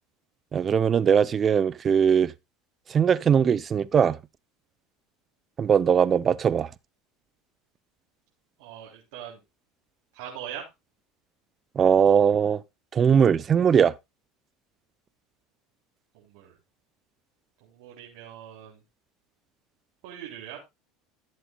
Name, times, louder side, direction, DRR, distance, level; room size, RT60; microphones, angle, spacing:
voice 1, 0.5-2.3 2.9-4.1 5.6-6.7 11.8-12.6 12.9-13.9, right 7 dB, 35° right, 0.7 m, -20 dB
voice 2, 8.6-9.4 10.1-10.7 16.1-16.5 17.6-18.8 20.0-20.6, right 10 dB, 75° right, 3.8 m, -41 dB
16.0 x 7.8 x 2.4 m
supercardioid pair, 95°, 0 cm